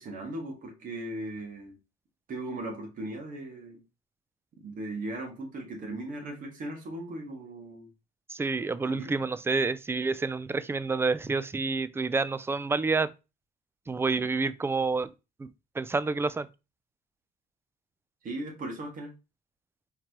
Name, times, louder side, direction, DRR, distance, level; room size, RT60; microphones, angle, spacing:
voice 1, 0.0-1.8 2.3-3.8 4.6-7.9 8.8-9.1 18.2-19.1, right 1 dB, 50° right, 1.9 m, -38 dB
voice 2, 8.3-13.1 13.9-15.1 15.4-15.5 15.8-16.5, right 4 dB, 15° right, 0.3 m, -28 dB
4.4 x 3.7 x 3.0 m
cardioid pair, 110°, 17 cm